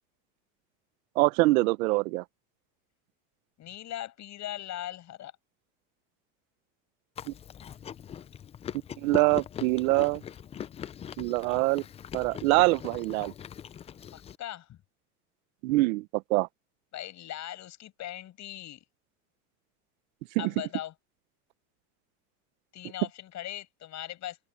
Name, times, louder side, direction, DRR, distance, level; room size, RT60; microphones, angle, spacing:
voice 1, 1.2-2.2 7.3-7.4 9.0-10.2 11.2-11.8 12.1-13.3 15.6-16.5 20.3-20.5, right 21 dB, 80° right, 1.0 m, -24 dB
voice 2, 3.6-5.3 14.1-14.8 16.9-18.8 20.4-20.9 22.7-24.4, left 12 dB, 40° left, 6.4 m, -39 dB
Chewing mastication, 7.2-14.4, left 9 dB, 15° left, 0.3 m, -41 dB
open air
supercardioid pair, 125°, 42 cm